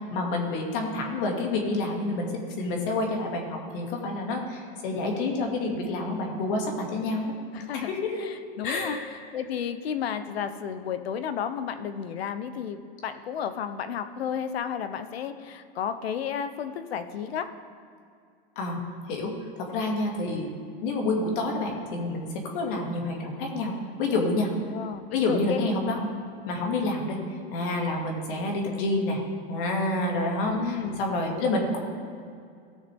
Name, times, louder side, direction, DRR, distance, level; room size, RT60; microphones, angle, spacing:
voice 1, 0.1-7.3 7.7-8.3 8.6-9.0 18.6-18.8 19.1-19.3 19.6-20.5 20.8-22.2 22.5-23.7 24.0-24.5 25.1-26.2 26.5-27.2 27.5-29.2 29.5-31.8, left 2 dB, 60° left, 1 dB, 2.3 m, -28 dB
voice 2, 7.5-7.9 8.2-9.0 9.3-17.5 24.7-25.6 30.5-31.0, left 8 dB, 90° left, 10 dB, 0.9 m, -32 dB
17.5 x 6.6 x 3.6 m, 2.3 s
supercardioid pair, 135°, 30 cm